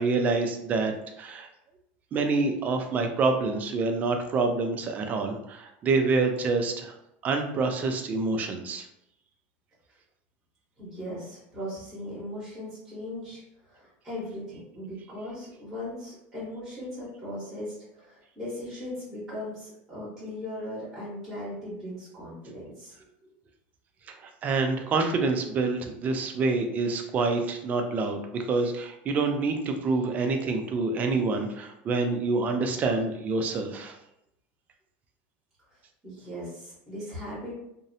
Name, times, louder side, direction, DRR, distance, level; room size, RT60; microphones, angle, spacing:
voice 1, 0.0-1.5 2.1-6.9 7.2-8.9 24.1-24.2 24.4-34.0, right 3 dB, 25° right, 5 dB, 0.3 m, -27 dB
voice 2, 10.8-23.0 23.2-23.3 32.6-32.8 36.0-37.5, left 1 dB, 5° right, -8 dB, 1.0 m, -38 dB
2.5 x 2.0 x 2.6 m, 0.80 s
supercardioid pair, 155°, 6 cm